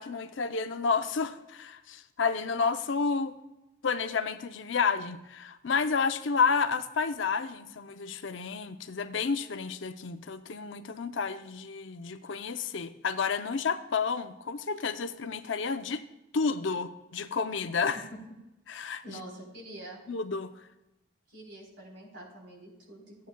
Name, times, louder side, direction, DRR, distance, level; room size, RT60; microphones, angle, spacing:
voice 1, 0.0-3.3 3.8-16.0 16.3-18.0 18.7-19.2 20.1-20.5, left 5 dB, 70° left, 10 dB, 0.6 m, -30 dB
voice 2, 19.0-20.0 21.3-23.3, right 1 dB, 65° right, -1 dB, 3.7 m, -46 dB
14.5 x 9.3 x 2.3 m, 0.95 s
head